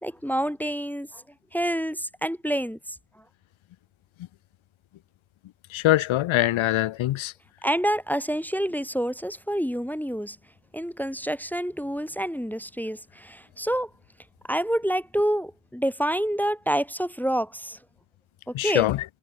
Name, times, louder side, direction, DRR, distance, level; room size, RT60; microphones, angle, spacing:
voice 1, 0.0-1.2 1.5-2.8 7.6-10.4 10.7-13.9 14.5-17.8 18.5-18.9, equal, 5° left, 0.7 m, -27 dB
voice 2, 5.7-7.3 18.5-19.0, left 15 dB, 70° left, 0.7 m, -23 dB
cardioid pair, 70°, 50 cm